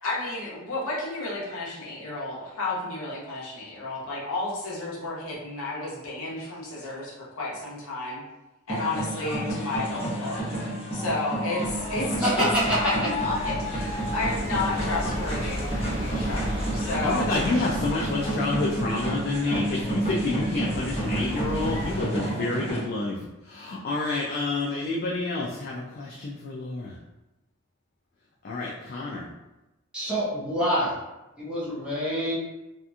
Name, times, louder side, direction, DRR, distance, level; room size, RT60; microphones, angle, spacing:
voice 1, 0.0-8.2 8.7-17.3, left 2 dB, 70° left, -6 dB, 0.8 m, -32 dB
sound 1, 8.7-22.8, right 1 dB, 30° left, 0.9 m, -31 dB
sound 2, 11.6-22.0, equal, 30° right, 1.0 m, -35 dB
voice 2, 12.2-13.1 29.9-31.0 31.4-32.4, equal, 5° right, -9 dB, 0.8 m, -26 dB
voice 3, 17.0-23.2 23.5-26.9 28.4-29.3, left 2 dB, 45° left, -3 dB, 0.3 m, -29 dB
2.8 x 2.5 x 2.3 m, 1.0 s
head